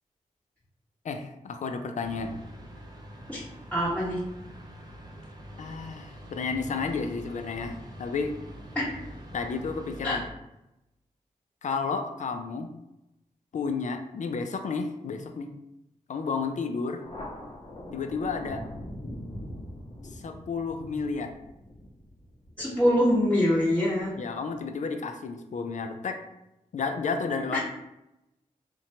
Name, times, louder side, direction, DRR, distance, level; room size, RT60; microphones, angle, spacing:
voice 1, 1.0-2.4 5.6-8.3 9.3-10.2 11.6-12.7 13.5-15.5 16.1-17.0 17.9-18.6 20.1-21.3 24.2-26.2 26.7-27.6, left 4 dB, 60° left, 6 dB, 0.4 m, -31 dB
sound 1, 2.0-10.3, equal, 30° right, 0.5 m, -44 dB
voice 2, 3.7-4.2 8.7-9.0 10.0-10.2 22.6-24.1 27.5-27.6, equal, 10° left, -10 dB, 0.9 m, -24 dB
Thunder, 17.0-24.1, left 1 dB, 40° left, 0.8 m, -43 dB
2.8 x 2.2 x 2.7 m, 0.90 s
cardioid pair, 45°, 14 cm